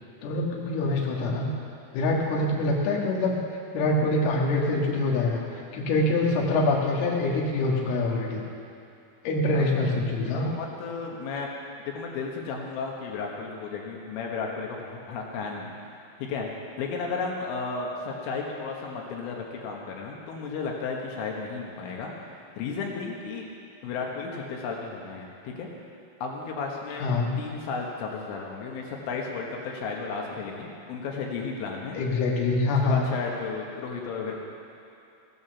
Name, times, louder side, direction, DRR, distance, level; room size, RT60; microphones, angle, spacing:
voice 1, 0.2-1.5 1.9-3.4 3.7-8.4 9.2-10.5 27.0-27.3 31.9-33.1, left 2 dB, 60° left, -2 dB, 3.3 m, -25 dB
voice 2, 9.5-9.9 10.3-11.5 11.9-15.7 16.2-16.5 16.8-22.1 22.6-23.5 23.8-25.7 26.2-27.1 27.4-32.0 32.7-34.3, left 4 dB, 80° left, -1 dB, 3.9 m, -34 dB
16.5 x 9.7 x 7.0 m, 2.7 s
omnidirectional pair, 5.8 m